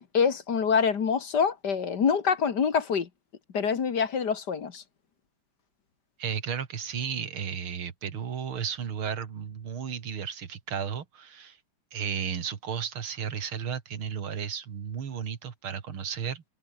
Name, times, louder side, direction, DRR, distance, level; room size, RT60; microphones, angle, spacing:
voice 1, 0.1-3.1 3.5-4.8, left 6 dB, 55° left, 2.1 m, -25 dB
voice 2, 6.2-11.6 11.9-16.4, right 7 dB, 80° right, 2.8 m, -34 dB
omnidirectional pair, 2.3 m